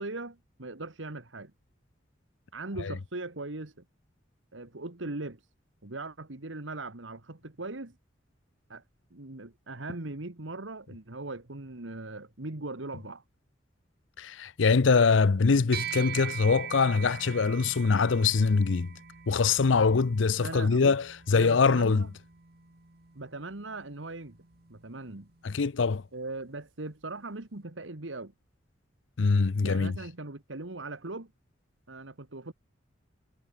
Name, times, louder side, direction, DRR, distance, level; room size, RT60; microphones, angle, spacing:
voice 1, 0.0-1.5 2.5-3.7 4.5-5.4 5.8-8.0 8.7-8.8 9.1-13.2 20.4-20.9 21.3-22.1 23.1-24.4 24.7-25.3 26.1-28.3 29.6-31.3 31.9-32.5, right 2 dB, 90° right, 1.9 m, -39 dB
voice 2, 14.2-18.9 19.3-22.1 25.4-26.0 29.2-29.9, left 4 dB, 85° left, 0.6 m, -23 dB
sound 1, 15.7-25.3, right 9 dB, 55° right, 1.7 m, -43 dB
head